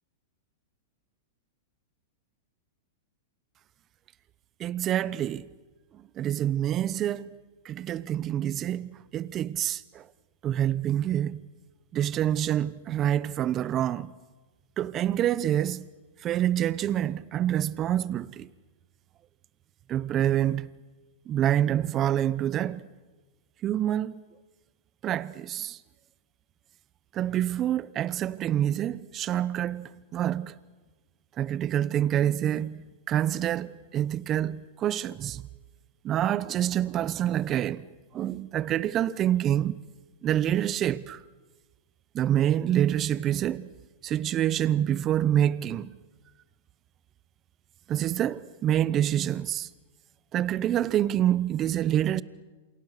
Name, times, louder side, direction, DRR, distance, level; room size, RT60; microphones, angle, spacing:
voice 1, 4.6-5.5 5.9-7.3 7.6-10.1 10.4-11.4 11.9-14.1 14.8-15.9 16.2-18.5 19.9-20.7 21.3-22.8 23.6-24.2 25.0-25.8 27.1-30.6 31.4-35.4 36.0-37.9 38.1-39.8 40.2-41.2 42.1-43.7 44.0-46.0 47.9-49.7 50.3-52.2, right 11 dB, 30° right, 0.9 m, -27 dB
28.5 x 27.5 x 6.7 m
hypercardioid pair, 125°, 0 cm